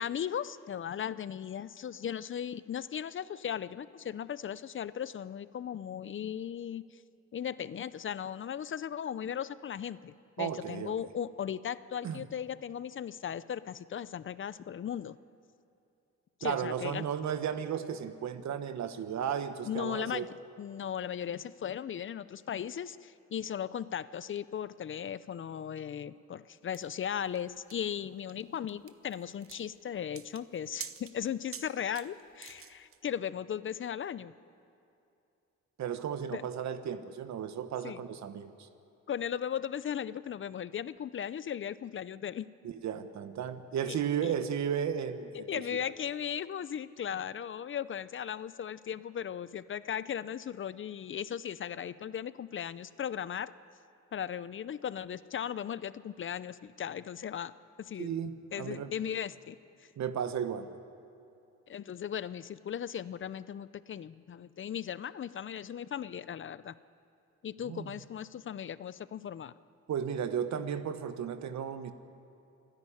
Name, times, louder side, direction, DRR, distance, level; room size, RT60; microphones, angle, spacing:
voice 1, 0.0-6.8 7.3-15.2 16.4-17.0 19.7-20.3 20.6-34.3 36.3-36.4 37.8-38.0 39.1-42.5 43.9-44.0 44.2-44.3 45.3-53.5 54.1-57.5 57.8-58.1 58.5-59.6 61.7-66.7 67.4-69.5, left 9 dB, 40° left, 17 dB, 0.6 m, -37 dB
voice 2, 10.4-10.9 12.0-12.2 16.4-20.3 35.8-38.7 42.6-45.9 58.0-58.9 60.0-60.7 67.6-67.9 69.9-71.9, right 8 dB, 65° right, 11 dB, 1.3 m, -34 dB
sound 1, 26.7-33.0, right 8 dB, 45° right, 1.1 m, -48 dB
27.0 x 10.5 x 10.0 m, 2.6 s
cardioid pair, 90°, 30 cm